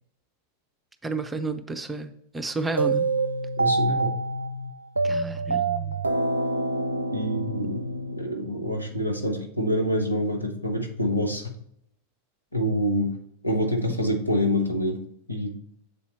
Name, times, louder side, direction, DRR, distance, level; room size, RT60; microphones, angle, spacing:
voice 1, 1.0-3.1 5.0-6.0, right 3 dB, 10° right, 8 dB, 0.5 m, -31 dB
sound 1, 2.8-8.9, right 3 dB, 80° right, 0.3 m, -27 dB
voice 2, 3.6-4.1 7.1-7.8 8.1-11.5 12.5-13.1 13.4-15.0 15.3-15.5, left 1 dB, 85° left, 2 dB, 1.1 m, -26 dB
7.3 x 4.3 x 4.1 m, 0.71 s
figure-of-eight pair, 90°, 0 cm